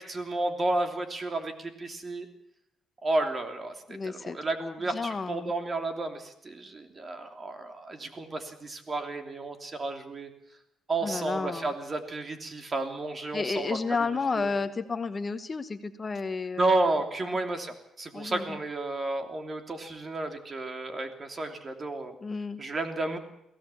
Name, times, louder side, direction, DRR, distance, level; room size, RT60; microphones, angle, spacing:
voice 1, 0.0-2.3 3.0-3.7 4.0-10.3 10.9-13.8 14.4-14.5 16.6-22.1 22.6-23.2, right 2 dB, 35° right, 5 dB, 3.1 m, -32 dB
voice 2, 3.9-5.5 11.0-11.7 13.3-17.0 17.2-17.4 18.1-18.6 22.2-22.6, left 4 dB, 30° left, 10 dB, 1.1 m, -32 dB
22.5 x 16.5 x 7.1 m, 0.82 s
cardioid pair, 90°, 0 cm